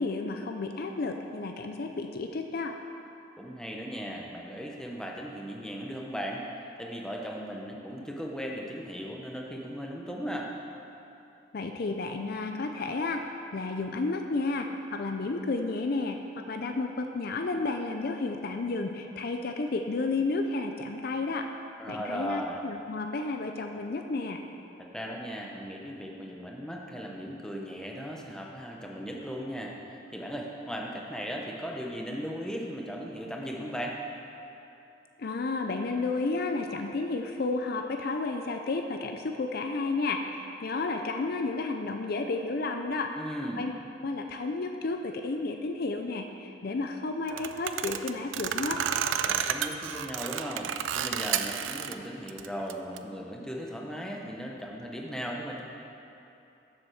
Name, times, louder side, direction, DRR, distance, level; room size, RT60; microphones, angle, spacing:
voice 1, 0.0-2.7 11.5-13.2 13.5-21.5 21.9-24.4 35.2-43.1 43.6-43.7 44.0-48.8, left 3 dB, 50° left, 5 dB, 0.5 m, -32 dB
voice 2, 3.4-6.4 6.8-10.5 21.8-22.6 24.8-34.0 43.2-43.7 49.2-55.6, equal, 5° left, -1 dB, 0.7 m, -37 dB
sound 1, 47.3-51.9 52.3-53.0, right 9 dB, 75° right, 0.4 m, -31 dB
7.7 x 7.1 x 6.3 m, 2.9 s
head